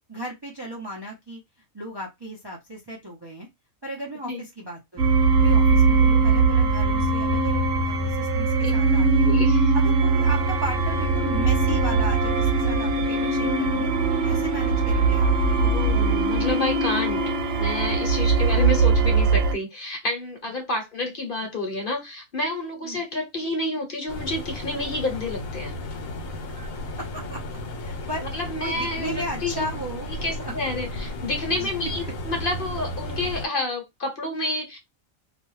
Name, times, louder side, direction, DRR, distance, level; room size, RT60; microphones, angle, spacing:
voice 1, 0.1-1.4 1.7-3.5 3.8-5.1 5.4-9.3 9.7-15.3 18.4-18.9 22.8-23.0 26.5-26.7 27.0-27.4 27.8-28.3 28.6-30.1 30.4-30.5 31.5-31.7, right 1 dB, 25° right, 0.5 m, -36 dB
sound 1, 5.0-19.5, right 3 dB, 75° right, 1.0 m, -21 dB
voice 2, 9.2-9.7 15.5-17.2 17.6-25.7 28.3-29.6 30.2-34.8, left 2 dB, 45° left, 0.9 m, -29 dB
sound 2, 24.1-33.5, left 1 dB, 75° left, 1.2 m, -34 dB
2.4 x 2.2 x 3.1 m
omnidirectional pair, 1.4 m